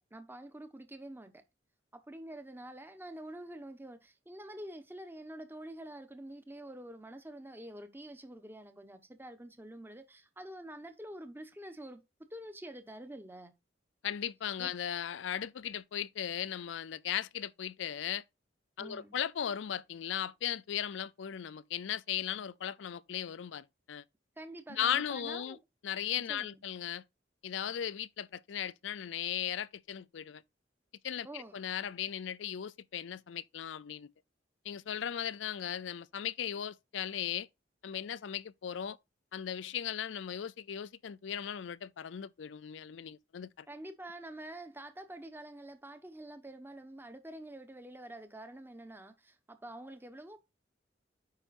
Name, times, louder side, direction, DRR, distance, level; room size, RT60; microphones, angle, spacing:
voice 1, 0.0-1.4 1.9-12.0 12.3-13.5 14.6-14.7 18.8-19.2 24.4-25.6 26.3-26.6 31.2-31.6 43.7-50.4, right 1 dB, 10° right, 1.0 m, -47 dB
voice 2, 14.0-18.2 18.8-24.0 24.7-25.6 25.8-27.0 27.4-30.4 31.0-34.1 34.6-37.5 37.8-39.0 39.3-43.7, left 9 dB, 75° left, 0.4 m, -37 dB
8.9 x 5.5 x 2.5 m
head